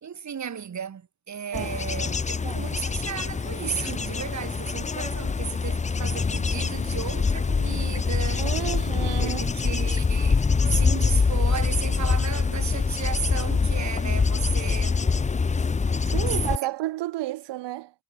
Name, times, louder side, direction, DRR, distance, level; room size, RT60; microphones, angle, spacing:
voice 1, 0.0-8.4 9.2-15.1, right 7 dB, 45° right, 1.1 m, -34 dB
Bird / Insect / Wind, 1.5-16.6, left 4 dB, 20° left, 0.5 m, -25 dB
voice 2, 8.4-9.4 16.1-17.9, right 16 dB, 85° right, 0.7 m, -31 dB
cardioid pair, 65°, 41 cm